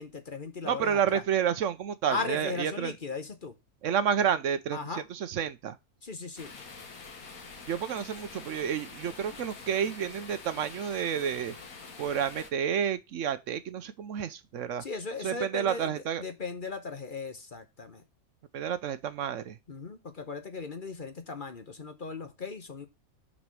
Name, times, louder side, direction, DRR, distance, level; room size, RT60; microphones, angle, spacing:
voice 1, 0.0-1.2 2.1-3.5 4.7-5.0 6.0-6.5 14.8-18.0 19.7-22.9, left 4 dB, 40° left, 1.0 m, -37 dB
voice 2, 0.6-2.9 3.8-5.8 7.7-11.5 12.0-14.8 15.2-16.2 18.5-19.6, right 8 dB, 65° right, 1.0 m, -30 dB
sound 1, 6.4-12.5, left 4 dB, 80° left, 1.9 m, -46 dB
6.1 x 4.2 x 6.1 m
omnidirectional pair, 1.5 m